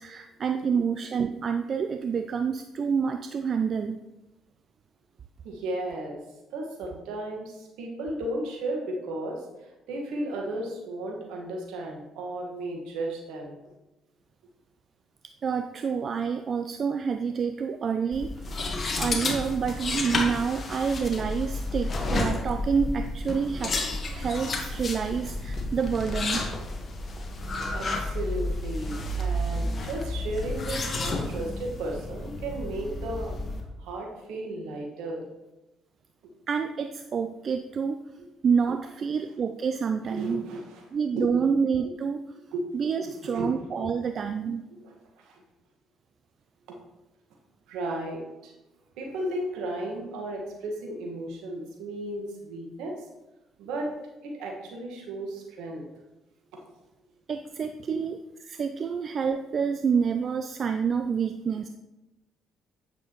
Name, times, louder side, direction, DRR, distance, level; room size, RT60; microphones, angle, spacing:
voice 1, 0.0-4.0 15.4-18.6 19.0-23.8 24.1-26.5 36.5-38.0 38.4-40.4 40.9-42.2 42.7-44.6 57.3-58.2 58.4-61.7, right 6 dB, 50° right, 8 dB, 0.4 m, -28 dB
voice 2, 5.4-6.2 6.5-9.4 9.9-13.6 27.7-33.3 33.8-35.2 38.2-38.3 40.0-40.8 41.2-41.4 42.5-42.6 43.0-43.9 44.7-45.4 47.7-48.5 49.0-52.9 53.6-53.9 54.2-55.9 57.9-58.0, right 1 dB, 75° right, 0 dB, 1.5 m, -34 dB
sound 1, 18.1-33.6, left 2 dB, 45° left, 1.4 m, -31 dB
8.6 x 6.9 x 3.0 m, 1.0 s
hypercardioid pair, 55°, 0 cm